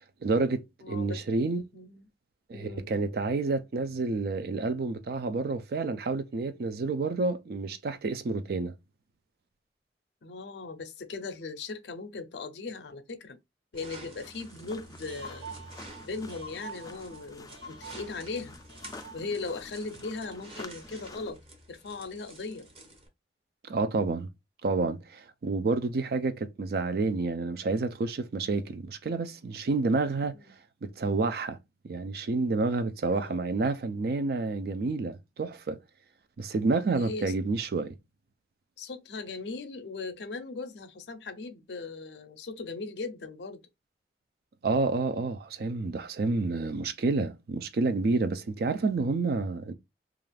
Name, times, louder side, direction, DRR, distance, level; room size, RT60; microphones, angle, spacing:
voice 1, 0.2-1.6 2.5-8.7 23.7-24.3 24.6-30.3 30.8-31.6 31.8-35.8 36.4-37.9 44.6-49.7, right 3 dB, 60° right, 0.4 m, -29 dB
voice 2, 0.8-1.2 1.7-2.1 2.5-2.9 10.2-13.4 13.7-15.5 16.0-18.6 19.1-21.4 21.7-22.7 30.3-30.6 33.1-33.5 36.9-37.3 38.8-43.6, left 3 dB, 75° left, 0.5 m, -38 dB
sound 1, 13.7-23.1, right 2 dB, 35° right, 0.7 m, -50 dB
sound 2, 14.2-21.3, left 3 dB, 20° left, 0.3 m, -49 dB
sound 3, 15.0-20.6, right 2 dB, 80° right, 1.4 m, -47 dB
2.5 x 2.3 x 3.2 m
head